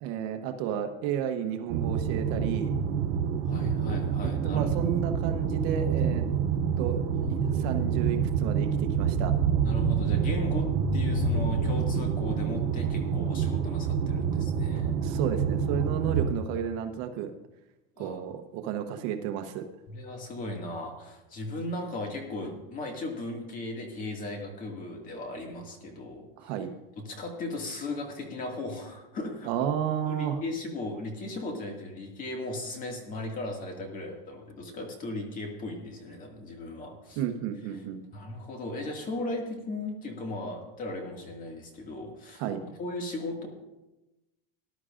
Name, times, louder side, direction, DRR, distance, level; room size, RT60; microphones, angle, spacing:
voice 1, 0.0-2.7 4.2-6.2 6.8-7.0 7.3-9.3 14.9-17.3 18.0-19.6 26.4-26.7 29.5-30.4 37.2-38.0 42.4-42.6, right 9 dB, 55° right, 6 dB, 1.0 m, -32 dB
sound 1, 1.7-16.3, right 6 dB, 90° right, 1.2 m, -27 dB
voice 2, 3.4-4.7 7.1-7.6 9.6-15.0 18.0-18.2 19.9-26.3 27.0-29.5 30.1-37.2 38.1-42.4 42.8-43.5, left 2 dB, 30° left, 2 dB, 2.1 m, -37 dB
19.0 x 11.0 x 2.5 m, 1.0 s
supercardioid pair, 150°, 29 cm